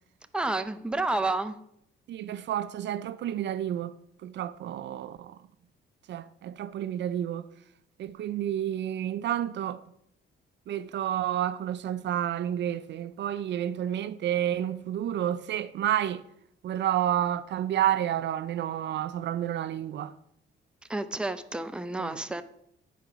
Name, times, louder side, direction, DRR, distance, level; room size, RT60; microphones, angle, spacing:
voice 1, 0.3-1.6 20.9-22.4, right 2 dB, 5° right, 0.6 m, -30 dB
voice 2, 2.1-3.9 4.2-5.4 6.1-7.5 8.0-9.8 10.7-16.2 16.6-20.1 22.0-22.1, right 11 dB, 65° right, 0.5 m, -30 dB
10.0 x 5.0 x 5.8 m
cardioid pair, 90°, 20 cm